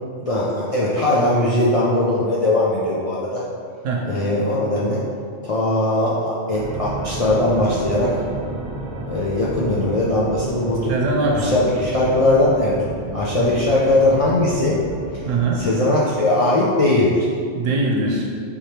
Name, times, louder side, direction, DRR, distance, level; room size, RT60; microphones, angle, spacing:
voice 1, 0.2-3.4 4.0-5.0 5.4-8.1 9.1-10.9 11.3-12.7 13.1-14.8 15.6-17.3, left 1 dB, 55° left, -8 dB, 0.4 m, -19 dB
sound 1, 6.5-15.6, right 2 dB, 55° right, 0.5 m, -32 dB
voice 2, 10.9-11.6 13.3-13.5 15.3-15.6 17.5-18.3, right 2 dB, 80° right, -1 dB, 1.1 m, -21 dB
3.6 x 3.3 x 4.3 m, 2.2 s
omnidirectional pair, 1.3 m